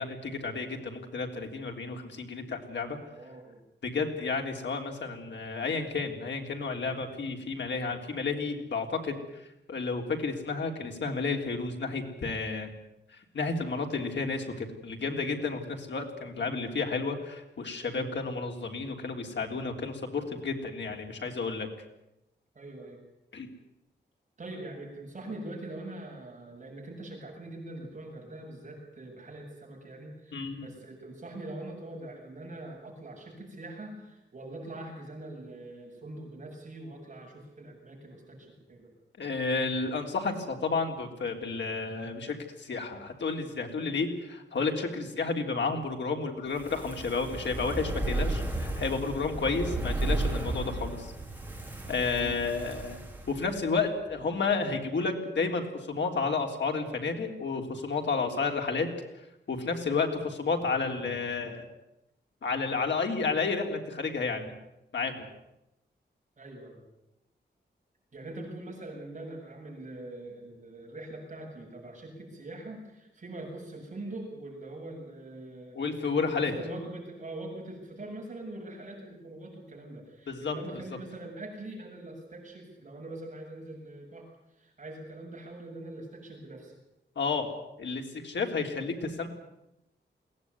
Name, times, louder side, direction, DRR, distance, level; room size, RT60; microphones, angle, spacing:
voice 1, 0.0-3.0 3.8-12.7 13.3-21.7 23.3-23.5 30.3-30.7 39.2-51.1 51.9-53.0 53.3-58.9 59.5-61.6 62.4-64.5 64.9-65.3 75.7-76.5 80.3-80.5 87.1-87.5 87.8-89.3, left 4 dB, 75° left, 3 dB, 3.5 m, -31 dB
voice 2, 3.0-3.6 16.3-16.6 17.9-18.1 22.5-23.0 24.4-38.9 45.1-45.3 52.2-52.4 66.4-66.8 68.1-75.8 76.2-86.7, right 2 dB, 40° right, -1 dB, 7.8 m, -43 dB
Fire, 46.5-53.8 54.1-54.2, right 2 dB, 10° right, 3.4 m, -34 dB
22.0 x 18.0 x 9.5 m, 0.89 s
wide cardioid pair, 180°, 19 cm